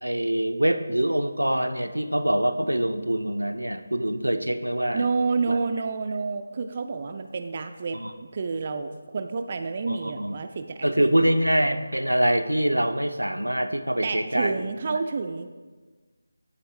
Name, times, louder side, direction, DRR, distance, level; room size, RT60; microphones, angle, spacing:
voice 1, 0.0-5.1 5.5-5.6 7.9-8.1 9.9-10.4 10.8-14.6 14.9-15.0, right 1 dB, 90° right, 9 dB, 0.6 m, -24 dB
voice 2, 4.9-8.0 8.3-11.3 14.0-15.5, right 4 dB, 35° right, 7 dB, 0.4 m, -29 dB
12.0 x 4.2 x 3.1 m, 1.4 s
figure-of-eight pair, 160°, 0 cm